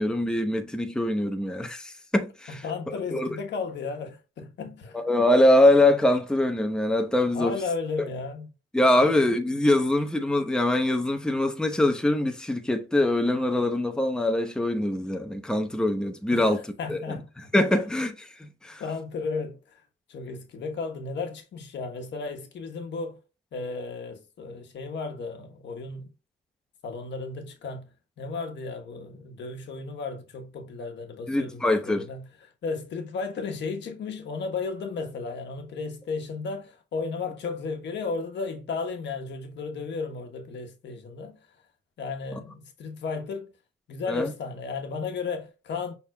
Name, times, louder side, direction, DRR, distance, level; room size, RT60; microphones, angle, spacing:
voice 1, 0.0-2.6 3.1-3.3 4.9-7.6 8.7-16.6 16.9-17.2 17.5-18.8 31.3-32.0 44.1-44.3, left 1 dB, 5° left, 0.8 m, -23 dB
voice 2, 2.5-5.1 7.3-8.5 8.9-9.2 16.3-17.5 18.8-23.2 23.5-26.1 26.8-41.6 42.0-43.5 43.9-45.9, left 4 dB, 65° left, 1.2 m, -34 dB
6.2 x 3.6 x 2.3 m
cardioid pair, 90°, 20 cm